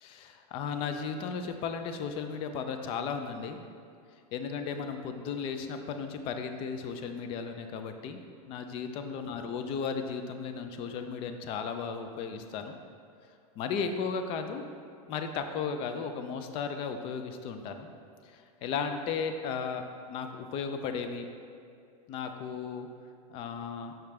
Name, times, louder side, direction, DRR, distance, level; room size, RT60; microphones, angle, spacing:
voice 1, 0.0-3.6 4.3-8.2 8.5-12.8 13.6-14.6 15.1-17.9 18.2-19.8 20.1-21.3 22.1-22.9 23.3-23.9, left 6 dB, 30° left, 7 dB, 0.3 m, -35 dB
5.7 x 5.1 x 3.2 m, 2.4 s
supercardioid pair, 145°, 20 cm